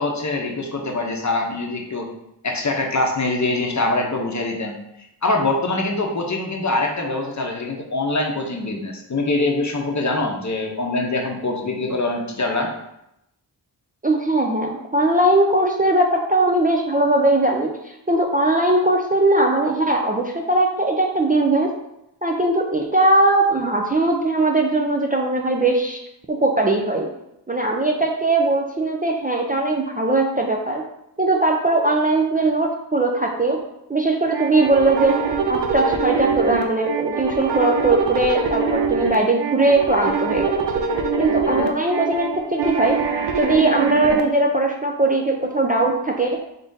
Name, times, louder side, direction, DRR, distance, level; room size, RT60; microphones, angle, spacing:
voice 1, 0.0-2.1 2.4-4.7 5.2-12.7, left 2 dB, 40° left, 2 dB, 0.7 m, -23 dB
voice 2, 14.0-17.7 18.1-21.7 22.2-26.0 26.3-27.1 27.5-30.8 31.2-33.6 33.9-35.2 35.5-40.6 41.2-43.0 43.4-46.4, right 2 dB, 20° right, 1 dB, 0.4 m, -19 dB
sound 1, 34.3-44.2, right 5 dB, 70° right, 0.6 m, -23 dB
3.7 x 3.6 x 2.6 m, 0.83 s
wide cardioid pair, 50°, 43 cm